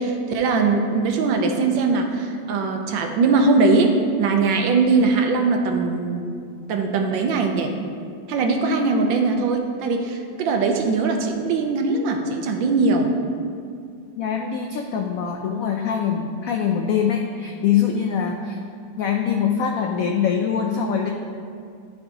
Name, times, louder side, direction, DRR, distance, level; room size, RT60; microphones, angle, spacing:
voice 1, 0.0-6.3 6.7-7.7 8.3-13.1, right 3 dB, 90° right, 4 dB, 1.4 m, -21 dB
voice 2, 14.2-18.6 19.0-21.1, left 7 dB, 85° left, 2 dB, 0.7 m, -23 dB
12.0 x 4.5 x 2.9 m, 2.3 s
omnidirectional pair, 2.0 m